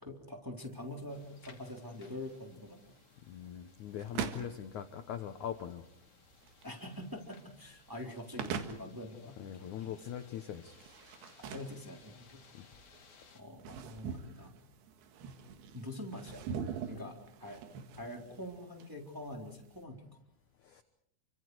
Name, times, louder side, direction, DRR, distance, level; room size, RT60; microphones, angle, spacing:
voice 1, 0.0-2.9 6.6-10.1 11.4-12.4 13.3-14.6 15.7-16.5 16.9-17.6 18.0-20.1, left 1 dB, 5° right, 0 dB, 2.7 m, -45 dB
sound 1, 0.6-19.8, right 7 dB, 70° right, 3.5 m, -45 dB
sound 2, 1.1-13.4, left 5 dB, 50° left, 3.6 m, -63 dB
voice 2, 3.3-5.8 9.4-10.8 20.6-20.8, left 9 dB, 75° left, 8 dB, 1.8 m, -41 dB
30.0 x 25.0 x 4.7 m, 0.74 s
omnidirectional pair, 5.1 m